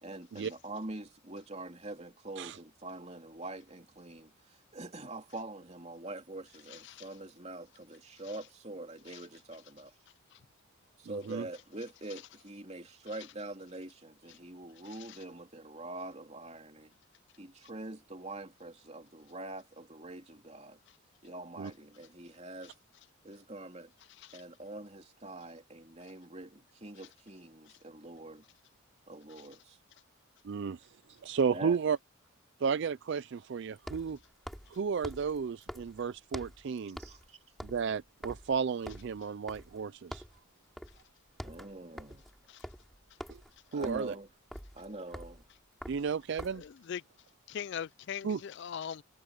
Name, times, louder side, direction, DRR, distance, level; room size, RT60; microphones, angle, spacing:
voice 1, 0.0-9.9 11.0-16.9 17.4-20.8 21.2-22.7 23.2-23.9 24.3-28.4 29.1-29.8 31.5-31.8 37.0-37.4 41.4-42.3 43.7-44.3 44.7-45.4, right 2 dB, 30° right, 3.0 m, -44 dB
voice 2, 11.1-11.5 21.6-21.7 30.4-31.0 31.2-32.0 32.6-34.2 34.7-37.0 37.6-40.2 43.3-43.4 43.7-44.1 45.9-46.6 48.2-48.4, right 6 dB, 50° right, 0.3 m, -33 dB
sound 1, 30.4-30.5 33.8-36.7 37.0-37.3 37.5-39.8 40.1-40.4 40.8-41.0 41.3-46.7, equal, ahead, 2.8 m, -46 dB
voice 3, 46.6-47.0 47.5-49.0, left 8 dB, 50° left, 0.3 m, -40 dB
head